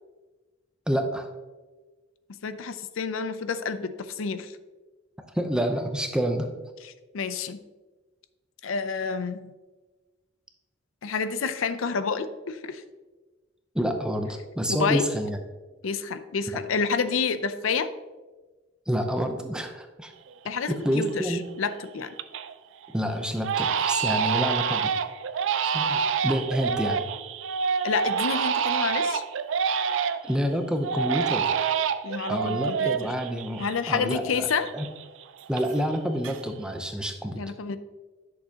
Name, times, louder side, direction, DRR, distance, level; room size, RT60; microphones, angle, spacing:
voice 1, 0.9-1.3 5.2-6.5 13.7-15.4 18.9-20.1 20.7-21.4 22.9-24.9 25.6-27.1 30.2-31.5 32.3-34.5 34.7-34.9 35.5-37.4, equal, 5° right, 5 dB, 0.6 m, -28 dB
voice 2, 2.4-4.6 6.8-7.6 8.6-9.5 11.0-12.8 14.7-15.1 15.8-17.9 20.4-22.1 27.8-29.2 32.0-33.1 33.6-34.7 37.3-37.8, left 5 dB, 80° left, 11 dB, 0.5 m, -29 dB
Crying sobbing, 20.3-20.4 20.8-21.3 21.7-22.5 22.8-23.0 23.4-30.4 30.8-34.2 34.4-36.0 36.2-36.8, right 6 dB, 65° right, 0.4 m, -27 dB
10.5 x 6.5 x 2.9 m, 1.3 s
head